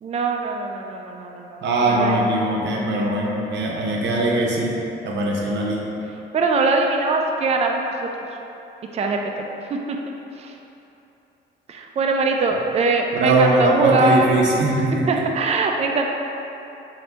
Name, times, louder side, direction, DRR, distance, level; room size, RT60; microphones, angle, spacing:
voice 1, 0.0-2.2 6.3-7.9 8.9-9.2 9.7-10.0 10.4-10.6 11.7-14.3 15.1-16.0, right 3 dB, 35° right, 2 dB, 0.4 m, -22 dB
voice 2, 1.6-4.8 5.0-5.9 13.1-15.2, right 2 dB, 65° right, -2 dB, 0.7 m, -21 dB
3.9 x 2.7 x 3.4 m, 2.9 s
cardioid pair, 90°, 20 cm